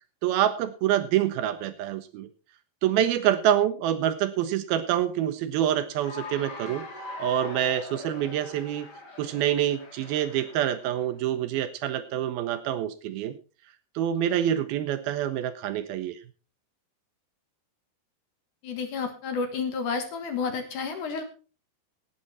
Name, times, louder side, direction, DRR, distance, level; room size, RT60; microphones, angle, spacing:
voice 1, 0.2-2.3 2.8-6.8 7.2-8.9 9.2-13.4 14.0-16.2, right 11 dB, 75° right, 11 dB, 2.4 m, -26 dB
Cheering / Applause, 5.9-11.0, left 3 dB, 30° left, 2.2 m, -42 dB
voice 2, 18.6-21.2, left 5 dB, 60° left, 7 dB, 2.5 m, -30 dB
17.0 x 8.8 x 4.1 m, 0.34 s
omnidirectional pair, 4.7 m